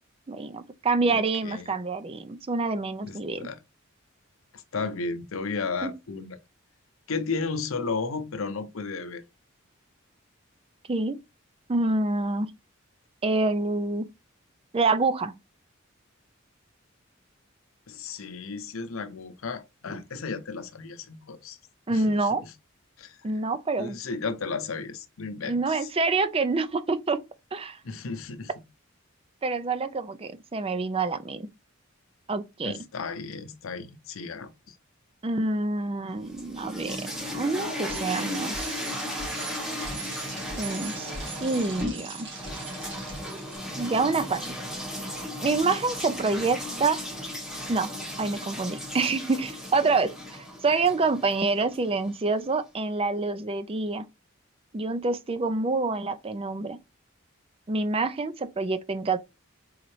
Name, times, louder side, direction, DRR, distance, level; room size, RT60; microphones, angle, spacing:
voice 1, 0.3-3.5 5.8-5.9 10.9-11.2 11.7-12.5 13.2-14.1 14.7-15.4 21.9-22.4 23.2-24.0 25.4-27.2 27.5-27.8 29.4-31.5 32.3-32.8 35.2-38.8 40.6-41.1 41.4-42.3 43.8-44.5 45.4-47.0 47.7-47.9 48.2-54.1 54.7-56.8 57.7-59.2, right 3 dB, 25° right, 0.4 m, -27 dB
voice 2, 1.0-1.7 3.0-3.6 4.5-6.4 7.1-9.2 17.9-21.6 21.9-22.5 23.0-23.2 23.8-25.9 27.8-28.5 32.6-34.8, left 4 dB, 80° left, 0.7 m, -34 dB
sound 1, 36.2-52.2, left 1 dB, 5° right, 1.1 m, -36 dB
Bicycle, 37.9-43.6, right 3 dB, 60° right, 2.1 m, -40 dB
4.2 x 3.9 x 3.2 m
head